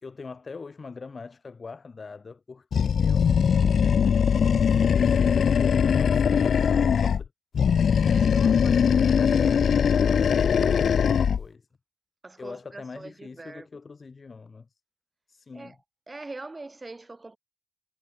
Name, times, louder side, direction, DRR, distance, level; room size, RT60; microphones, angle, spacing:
voice 1, 0.0-4.3 4.7-7.3 8.7-11.7 12.4-14.7 15.3-15.8, left 4 dB, 30° left, 2.9 m, -42 dB
Animal, 2.7-7.2 7.5-11.5, left 7 dB, 50° left, 0.4 m, -21 dB
voice 2, 8.0-9.4 9.7-10.1 10.8-11.0 12.2-13.7 15.5-15.8 16.1-17.4, right 2 dB, 20° right, 2.6 m, -43 dB
cardioid pair, 90°, 0 cm